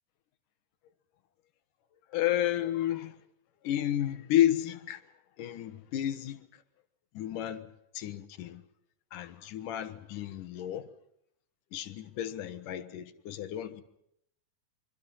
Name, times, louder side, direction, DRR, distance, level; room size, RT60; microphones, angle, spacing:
voice 1, 2.1-3.2 3.6-5.0 5.4-6.4 7.1-7.7 7.9-8.6 9.1-10.9 11.7-13.8, left 12 dB, 70° left, 2.7 m, -31 dB
25.5 x 25.0 x 5.6 m
omnidirectional pair, 4.0 m